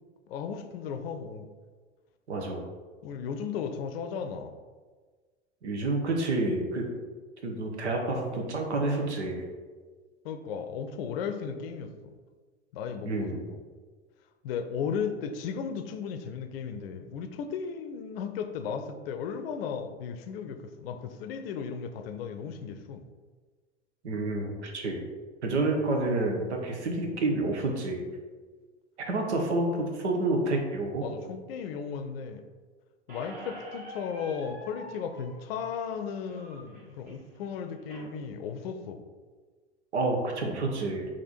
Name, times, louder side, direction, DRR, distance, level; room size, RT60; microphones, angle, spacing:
voice 1, 0.3-1.5 3.0-4.5 10.2-12.1 12.7-13.6 14.4-23.0 27.0-27.2 31.0-32.4 33.1-39.0, left 6 dB, 60° left, 7 dB, 0.6 m, -35 dB
voice 2, 2.3-2.6 5.6-6.9 7.4-9.4 13.0-13.4 24.0-25.0 25.4-28.0 29.1-31.0 39.9-41.0, right 2 dB, 75° right, 2 dB, 1.0 m, -29 dB
Squeak, 33.1-38.1, equal, 25° right, 1.3 m, -47 dB
4.3 x 2.9 x 4.2 m, 1.4 s
figure-of-eight pair, 85°, 34 cm